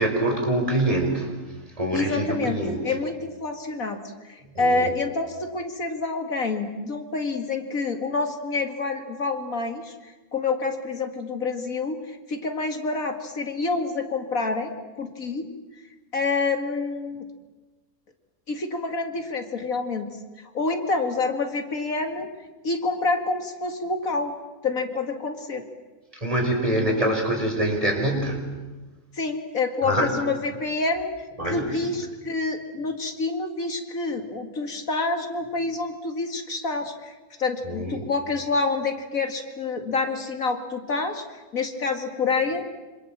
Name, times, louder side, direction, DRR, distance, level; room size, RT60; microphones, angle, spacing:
voice 1, 0.0-1.3 1.8-2.8 4.4-4.9 26.1-28.4 29.8-30.1 31.4-31.9 37.6-38.0, right 1 dB, 25° right, 2 dB, 5.4 m, -25 dB
voice 2, 1.9-14.7 15.0-15.5 16.1-17.3 18.5-20.1 20.5-22.3 22.6-24.3 24.6-25.6 29.1-31.1 31.4-37.1 37.4-42.7, left 3 dB, 70° left, 5 dB, 2.5 m, -27 dB
27.0 x 27.0 x 7.5 m, 1.2 s
omnidirectional pair, 1.5 m